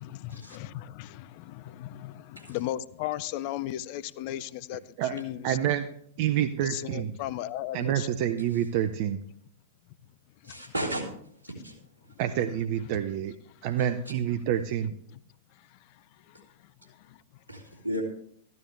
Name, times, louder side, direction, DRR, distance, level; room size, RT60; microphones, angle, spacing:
voice 1, 0.0-1.2 1.8-2.1 2.5-5.6 6.7-8.1, left 13 dB, 45° left, 0.5 m, -35 dB
voice 2, 5.4-5.9 6.2-7.1 7.7-9.2 12.2-13.3 13.6-14.9, right 10 dB, 45° right, 0.6 m, -27 dB
voice 3, 10.4-11.1 11.4-11.8 17.5-18.0, equal, 80° right, 3.2 m, -34 dB
14.0 x 12.0 x 3.2 m
figure-of-eight pair, 100°, 0 cm